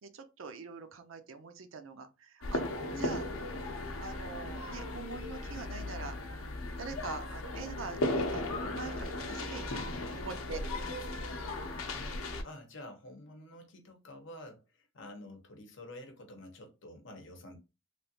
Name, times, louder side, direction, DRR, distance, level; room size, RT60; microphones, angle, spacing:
voice 1, 0.0-2.6 3.0-3.2 4.0-6.2 6.8-8.0 8.3-9.9 10.1-10.6, right 4 dB, 70° right, 0.5 m, -43 dB
sound 1, 2.4-12.4, left 2 dB, 85° left, 0.6 m, -36 dB
voice 2, 10.0-10.7 11.8-17.6, left 1 dB, 60° left, 0.9 m, -49 dB
3.2 x 2.4 x 2.7 m
head